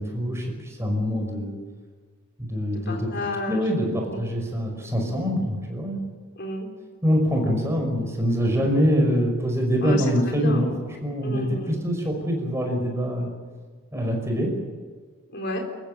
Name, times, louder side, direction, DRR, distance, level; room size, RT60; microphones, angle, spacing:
voice 1, 0.0-1.6 2.4-3.1 3.5-6.0 7.0-13.3 13.9-14.5, equal, 10° right, 1 dB, 5.6 m, -24 dB
voice 2, 2.7-3.6 4.0-4.2 6.4-6.7 9.8-10.7 11.2-11.8 15.3-15.6, left 1 dB, 50° left, 2 dB, 3.9 m, -31 dB
28.0 x 15.5 x 9.3 m, 1.5 s
head